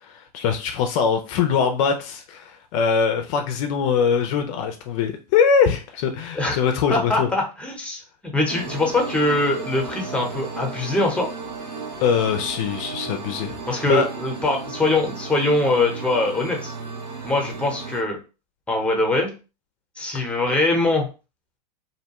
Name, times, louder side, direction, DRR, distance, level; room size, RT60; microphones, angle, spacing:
voice 1, 0.0-7.3 12.0-14.1 20.2-20.4, left 6 dB, 50° left, 6 dB, 0.5 m, -22 dB
voice 2, 6.9-8.0 8.3-11.3 13.7-16.7 17.2-18.2 18.7-19.3 20.0-21.1, left 2 dB, 5° left, 1 dB, 0.8 m, -22 dB
sound 1, 8.5-18.0, right 4 dB, 85° right, 0.9 m, -34 dB
2.7 x 2.2 x 2.9 m, 0.32 s
hypercardioid pair, 115°, 21 cm